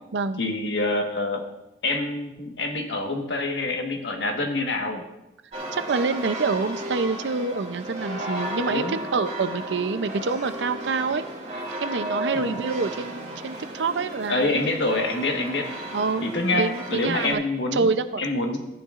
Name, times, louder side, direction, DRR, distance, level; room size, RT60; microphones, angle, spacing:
voice 1, 0.4-1.4 1.8-5.0 8.6-9.0 12.3-12.5 14.3-15.7 16.2-17.9 18.2-18.7, left 2 dB, 80° left, 3 dB, 1.4 m, -26 dB
sound 1, 5.5-17.3, right 1 dB, 40° right, 2.0 m, -34 dB
voice 2, 5.7-11.2 11.5-14.6 15.9-16.2 16.5-17.4 17.7-18.3, right 4 dB, 85° right, 11 dB, 0.6 m, -26 dB
14.0 x 9.7 x 2.5 m, 0.94 s
head